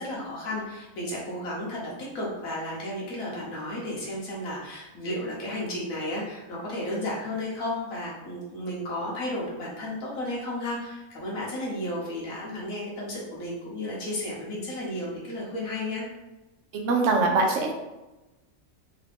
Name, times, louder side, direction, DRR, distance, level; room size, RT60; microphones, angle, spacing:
voice 1, 0.0-16.0, left 1 dB, 90° left, -4 dB, 1.5 m, -33 dB
voice 2, 16.7-17.7, right 3 dB, 70° right, 2 dB, 0.9 m, -23 dB
3.6 x 2.5 x 3.4 m, 1.0 s
omnidirectional pair, 1.4 m